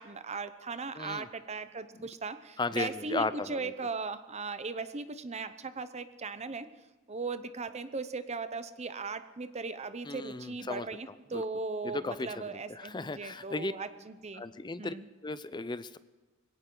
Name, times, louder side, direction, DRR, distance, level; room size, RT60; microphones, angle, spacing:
voice 1, 0.0-6.7 7.1-14.4 14.8-15.1, right 4 dB, 30° right, 12 dB, 0.7 m, -38 dB
voice 2, 0.9-1.3 1.9-2.1 2.6-3.7 10.1-10.9 11.3-11.4 11.8-13.7 14.4-14.9 15.2-16.0, left 3 dB, 20° left, 14 dB, 0.6 m, -35 dB
21.5 x 17.0 x 3.9 m, 1.2 s
head